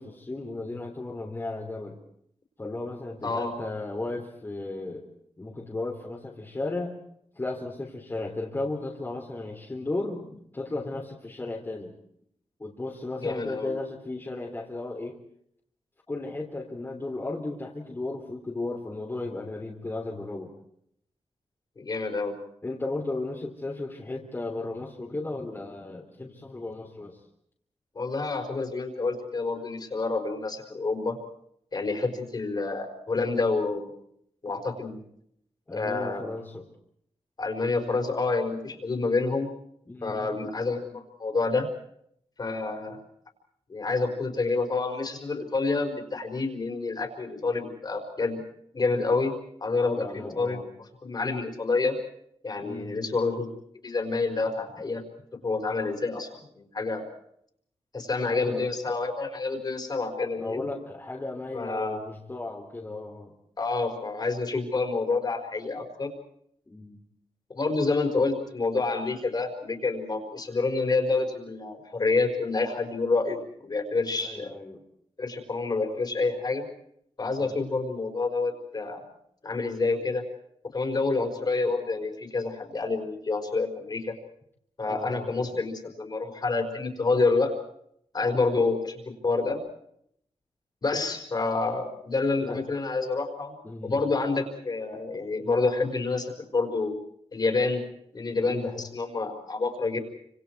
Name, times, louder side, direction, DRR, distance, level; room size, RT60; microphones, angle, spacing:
voice 1, 0.0-2.0 2.6-5.1 5.4-7.0 7.3-11.9 12.6-15.2 16.1-20.5 22.6-27.2 35.7-36.7 39.9-40.4 49.8-50.7 52.6-53.0 58.2-58.7 60.4-63.3 66.7-67.0 74.2-74.8 77.2-77.6 84.8-85.5 92.4-92.6 93.6-94.0 98.4-98.8, left 2 dB, 20° left, -2 dB, 3.3 m, -35 dB
voice 2, 3.2-3.5 13.2-13.7 21.8-22.4 27.9-31.2 31.7-33.9 34.4-35.0 35.7-36.2 37.4-39.5 40.0-41.7 42.4-43.0 43.7-48.4 48.7-49.3 49.6-50.6 51.0-51.9 52.4-53.5 53.8-55.0 55.4-57.0 57.9-60.6 61.5-62.0 63.6-66.1 67.5-74.5 75.2-76.6 77.2-79.0 79.4-80.2 80.7-84.1 84.8-87.5 88.1-89.6 90.8-93.5 93.8-97.0 97.3-97.8 98.1-100.0, left 3 dB, 40° left, 5 dB, 4.8 m, -28 dB
30.0 x 26.5 x 4.7 m, 0.70 s
wide cardioid pair, 165°, 11 cm